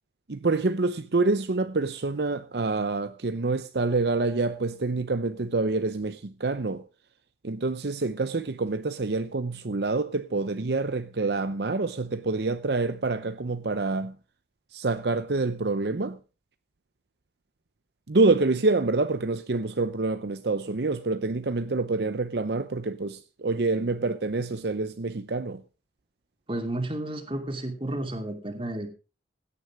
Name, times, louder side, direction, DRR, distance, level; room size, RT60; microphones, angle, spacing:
voice 1, 0.3-6.8 7.4-14.2 14.7-16.2 18.1-25.6, right 3 dB, 65° right, 0.7 m, -27 dB
voice 2, 26.5-28.9, right 1 dB, 30° right, 2.6 m, -32 dB
16.5 x 9.9 x 4.8 m
head